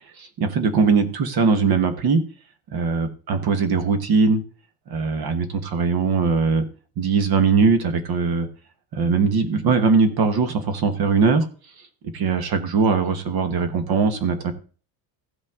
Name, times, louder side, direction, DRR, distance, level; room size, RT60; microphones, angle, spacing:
voice 1, 0.2-2.2 2.7-4.4 4.9-6.6 7.0-8.5 8.9-11.4 12.1-14.5, right 4 dB, 50° right, 9 dB, 1.3 m, -20 dB
16.0 x 5.3 x 3.6 m, 0.39 s
cardioid pair, 145°, 47 cm